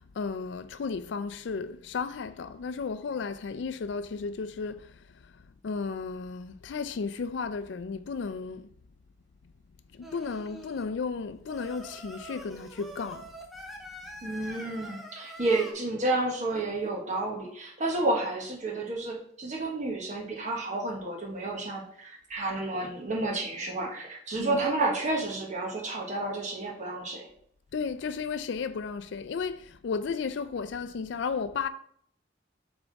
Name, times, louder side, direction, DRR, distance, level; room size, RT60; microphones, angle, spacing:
voice 1, 0.0-8.7 9.9-13.3 24.4-24.6 27.7-31.7, left 5 dB, 65° left, 0.4 m, -34 dB
Singing, 10.0-10.9 11.5-15.7, right 1 dB, ahead, 0.8 m, -44 dB
voice 2, 14.2-27.3, right 2 dB, 40° right, 1.3 m, -31 dB
7.0 x 3.5 x 4.0 m
head